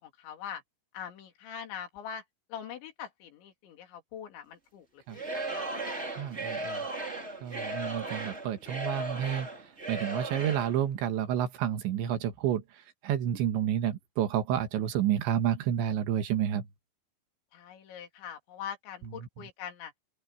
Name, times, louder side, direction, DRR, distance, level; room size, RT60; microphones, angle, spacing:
voice 1, 0.0-0.6 0.9-2.2 2.5-5.7 17.5-19.9, left 8 dB, 75° left, 5.2 m, -43 dB
Singing / Crowd, 5.1-10.8, right 2 dB, 15° right, 3.7 m, -36 dB
voice 2, 6.2-6.9 7.4-9.5 9.9-12.6 13.0-16.7, right 10 dB, 75° right, 3.8 m, -30 dB
open air
omnidirectional pair, 5.4 m